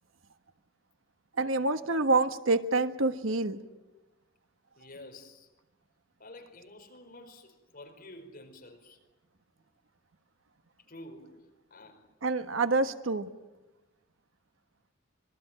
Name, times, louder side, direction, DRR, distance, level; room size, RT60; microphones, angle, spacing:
voice 1, 1.4-3.6 12.2-13.3, right 3 dB, 90° right, 9 dB, 1.4 m, -27 dB
voice 2, 4.8-5.5 6.2-9.0 10.9-12.1, left 1 dB, 45° left, 4 dB, 4.8 m, -50 dB
26.0 x 22.5 x 9.0 m, 1.1 s
head